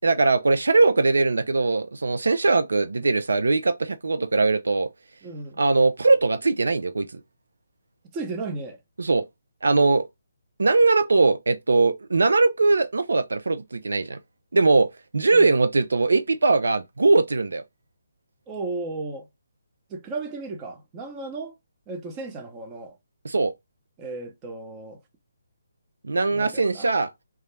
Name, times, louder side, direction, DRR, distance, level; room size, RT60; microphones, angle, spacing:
voice 1, 0.0-4.9 5.6-7.2 9.0-9.2 9.6-10.1 10.6-14.2 14.5-14.9 15.1-17.6 23.2-23.5 26.0-27.1, right 3 dB, 75° right, 0.3 m, -21 dB
voice 2, 5.2-5.6 8.1-8.8 15.3-15.5 18.5-19.3 19.9-21.5 21.9-23.0 24.0-25.0 26.3-26.9, right 3 dB, 20° right, 0.6 m, -34 dB
2.3 x 2.0 x 3.1 m
figure-of-eight pair, 150°, 0 cm